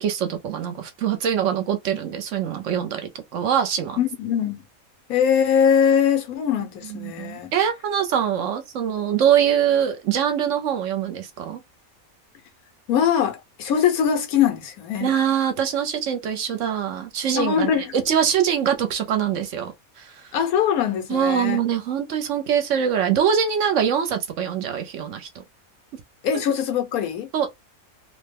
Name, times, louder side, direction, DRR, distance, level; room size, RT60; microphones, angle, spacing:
voice 1, 0.0-3.0 3.3-4.0 6.9-11.6 15.0-19.7 20.0-20.1 21.1-25.4 27.3-27.5, right 8 dB, 65° right, 0.9 m, -23 dB
voice 2, 4.0-4.6 5.1-7.5 12.9-15.1 17.4-17.9 20.3-21.6 26.2-27.3, left 8 dB, 85° left, 1.2 m, -22 dB
2.8 x 2.1 x 3.3 m
omnidirectional pair, 1.5 m